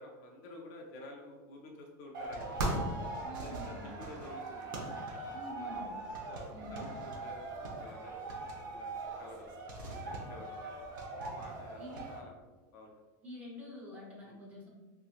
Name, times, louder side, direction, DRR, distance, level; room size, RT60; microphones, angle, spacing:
voice 1, 0.0-2.6 3.3-4.7 5.2-5.9 6.3-8.9 9.2-9.5 9.8-10.6 11.3-11.8 12.1-12.3 12.7-12.9 14.2-14.4, left 1 dB, 40° left, 0 dB, 0.4 m, -51 dB
sound 1, 2.1-12.2, right 2 dB, 85° right, 0.7 m, -40 dB
voice 2, 3.2-3.9 5.3-5.9 6.5-6.9 11.8-12.1 13.2-14.7, left 2 dB, 15° right, -4 dB, 0.6 m, -47 dB
3.2 x 2.8 x 2.4 m, 1.3 s
supercardioid pair, 180°, 10 cm